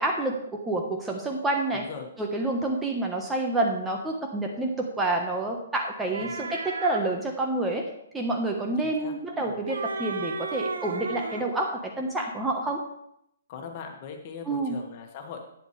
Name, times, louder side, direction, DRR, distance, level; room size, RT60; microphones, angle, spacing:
voice 1, 0.0-1.8 2.2-7.9 8.1-12.8 14.5-14.8, right 2 dB, 10° right, 1 dB, 1.2 m, -28 dB
voice 2, 1.7-2.1 6.2-6.4 8.8-9.1 9.4-9.7 13.5-15.4, left 6 dB, 40° left, 3 dB, 1.9 m, -40 dB
sound 1, 6.1-7.1 9.3-11.5, right 3 dB, 70° right, 1.0 m, -34 dB
11.5 x 9.6 x 3.4 m, 0.76 s
figure-of-eight pair, 125°, 0 cm